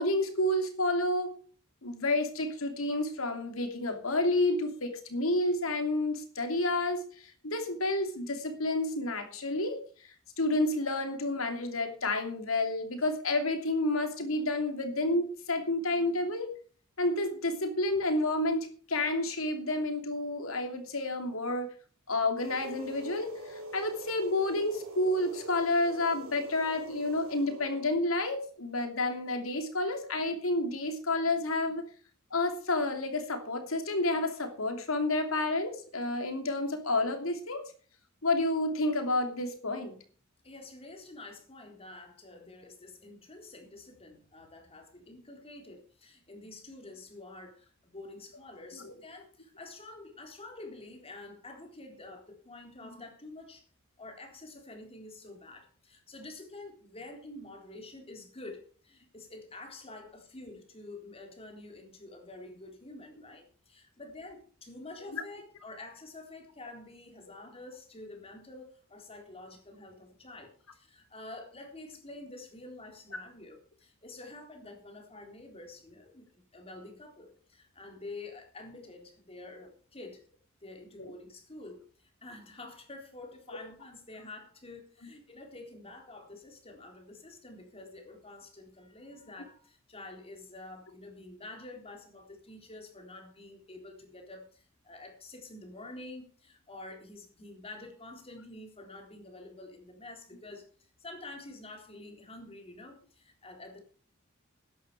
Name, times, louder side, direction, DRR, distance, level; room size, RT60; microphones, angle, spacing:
voice 1, 0.0-1.3 1.8-9.8 10.4-16.5 17.0-21.7 22.1-31.8 32.3-37.6 38.2-39.9 48.8-48.9 65.1-65.2 81.0-81.1, left 2 dB, 80° left, 6 dB, 2.9 m, -30 dB
sound 1, 22.4-28.0, right 2 dB, 80° right, 2.4 m, -44 dB
voice 2, 40.4-53.6 54.0-80.2 80.6-103.8, left 2 dB, 30° left, 3 dB, 3.8 m, -48 dB
13.0 x 10.5 x 4.9 m, 0.42 s
head